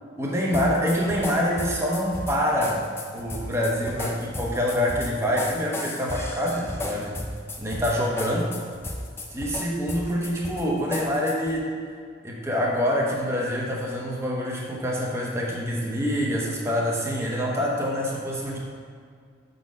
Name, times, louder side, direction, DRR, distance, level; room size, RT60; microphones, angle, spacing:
voice 1, 0.2-2.9 3.1-7.2 7.6-8.5 9.3-11.7 12.2-18.6, equal, 15° right, -2 dB, 0.8 m, -26 dB
sound 1, 0.5-11.6, left 1 dB, 10° left, 0.4 m, -34 dB
6.1 x 4.0 x 5.2 m, 2.1 s
head